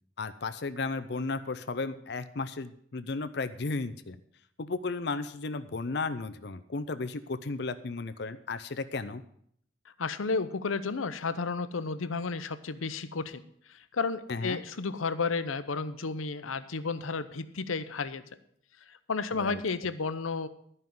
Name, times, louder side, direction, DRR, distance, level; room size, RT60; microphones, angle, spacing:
voice 1, 0.2-4.2 4.6-9.2 14.3-14.6 19.4-19.6, left 3 dB, 55° left, 12 dB, 0.6 m, -34 dB
voice 2, 10.0-13.4 13.7-18.2 18.9-20.5, left 4 dB, 90° left, 12 dB, 0.7 m, -32 dB
13.0 x 5.4 x 7.6 m, 0.67 s
head